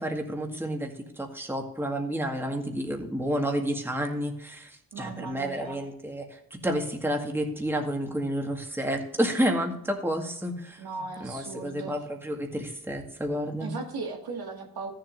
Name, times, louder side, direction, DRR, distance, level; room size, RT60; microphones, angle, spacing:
voice 1, 0.0-10.8 11.2-13.7, equal, 5° right, 2 dB, 1.9 m, -30 dB
voice 2, 4.9-5.8 10.8-12.0 13.6-14.9, right 4 dB, 85° right, 1 dB, 2.1 m, -37 dB
14.0 x 7.6 x 2.7 m, 0.73 s
cardioid pair, 80°, 37 cm